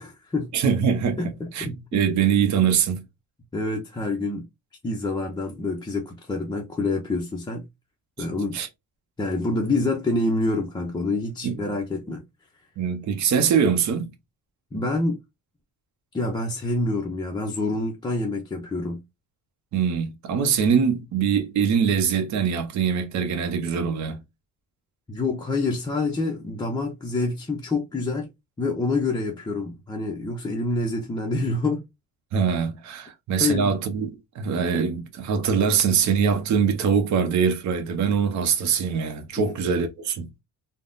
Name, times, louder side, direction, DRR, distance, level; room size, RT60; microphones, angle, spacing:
voice 1, 0.0-0.5 1.2-2.2 3.5-4.5 4.8-7.7 8.2-8.6 9.2-12.2 14.7-15.2 16.1-19.0 25.1-28.3 28.6-31.8 33.4-33.7, left 2 dB, 10° left, 0.4 m, -27 dB
voice 2, 0.5-1.2 1.5-3.0 8.5-8.7 11.4-11.6 12.8-14.1 19.7-24.2 32.3-40.3, right 7 dB, 55° right, 0.7 m, -23 dB
3.5 x 2.0 x 2.4 m
cardioid pair, 120°, 36 cm